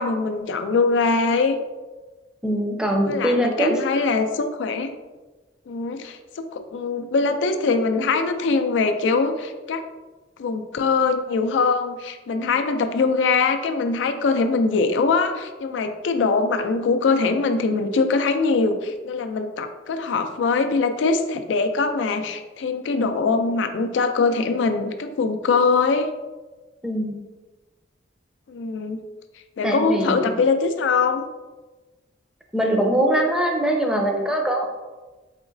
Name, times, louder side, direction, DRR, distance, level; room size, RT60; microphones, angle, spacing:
voice 1, 0.0-1.6 3.1-4.9 5.7-9.8 10.4-26.1 28.5-29.0 29.6-31.2, left 4 dB, 80° left, 8 dB, 0.4 m, -22 dB
voice 2, 2.4-3.8 26.8-27.3 29.6-30.3 32.5-34.7, right 1 dB, 5° right, 1 dB, 0.5 m, -22 dB
4.9 x 2.9 x 2.5 m, 1.2 s
head